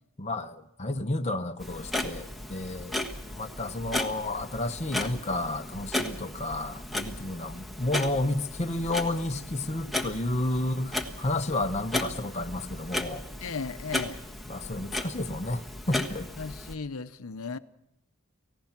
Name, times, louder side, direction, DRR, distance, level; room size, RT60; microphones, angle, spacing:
voice 1, 0.2-13.2 14.5-16.3, left 2 dB, 30° left, 0.8 m, -31 dB
Clock, 1.6-16.7, left 1 dB, ahead, 1.4 m, -35 dB
voice 2, 13.4-14.2 16.4-17.6, left 5 dB, 70° left, 0.8 m, -36 dB
30.0 x 16.5 x 5.9 m
head